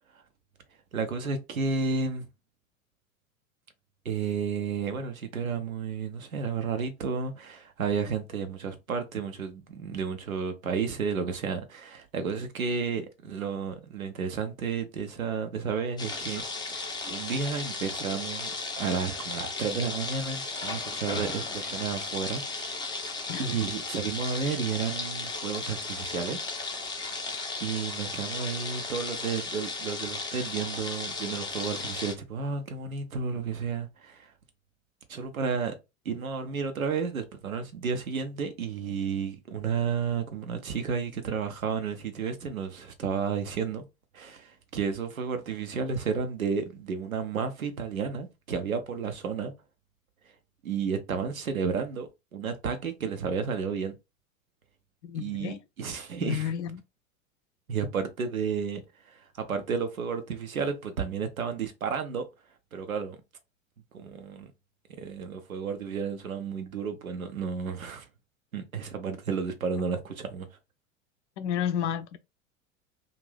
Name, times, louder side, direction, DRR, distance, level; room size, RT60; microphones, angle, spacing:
voice 1, 0.9-2.3 4.0-16.4 16.7-23.0 23.4-26.5 27.6-34.3 35.1-35.7 36.0-43.8 44.1-49.5 50.6-53.9 55.1-56.5 57.7-62.2 62.7-63.2 63.9-64.5 65.0-68.1 68.5-70.5, right 6 dB, 85° right, 0.7 m, -32 dB
sound 1, 16.0-32.1, left 3 dB, 10° left, 0.6 m, -35 dB
voice 2, 55.0-55.6 56.2-56.8 71.4-72.2, left 9 dB, 60° left, 0.6 m, -31 dB
2.6 x 2.5 x 3.2 m
figure-of-eight pair, 85°, 41 cm